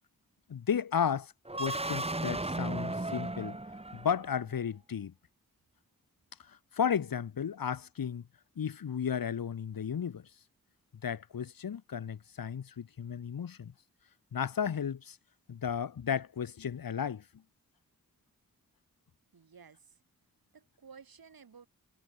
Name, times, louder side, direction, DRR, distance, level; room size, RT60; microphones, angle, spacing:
voice 1, 0.5-1.3 1.6-3.6 3.9-5.1 6.4-8.2 8.6-10.3 11.0-13.7 14.3-15.2 15.5-17.2, left 7 dB, 75° left, 1.0 m, -34 dB
sound 1, 1.4-4.4, right 2 dB, 15° right, 1.7 m, -35 dB
voice 2, 19.3-20.0 20.5-21.7, right 6 dB, 80° right, 3.1 m, -55 dB
wide cardioid pair, 80°, 35 cm